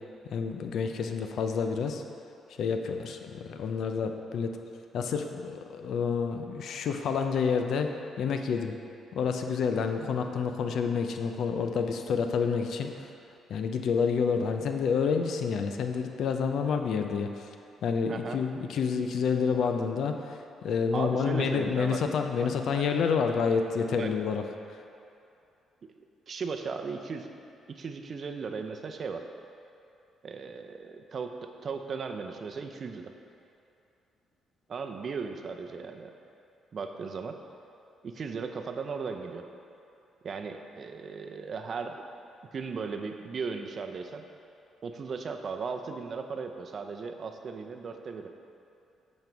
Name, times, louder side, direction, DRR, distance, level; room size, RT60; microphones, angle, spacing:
voice 1, 0.3-2.0 2.6-4.6 4.9-7.9 8.2-8.7 9.1-13.1 13.5-17.6 17.8-24.4, left 6 dB, 70° left, 6 dB, 0.5 m, -29 dB
voice 2, 20.9-22.0 22.4-22.9 23.9-24.1 26.3-27.3 27.7-29.2 30.2-31.3 31.6-33.1 34.7-36.1 36.7-37.4 38.0-39.4 40.2-42.0 42.5-44.2 44.8-48.3, right 5 dB, 50° right, 5 dB, 0.6 m, -36 dB
8.1 x 5.3 x 4.5 m, 2.6 s
cardioid pair, 90°, 0 cm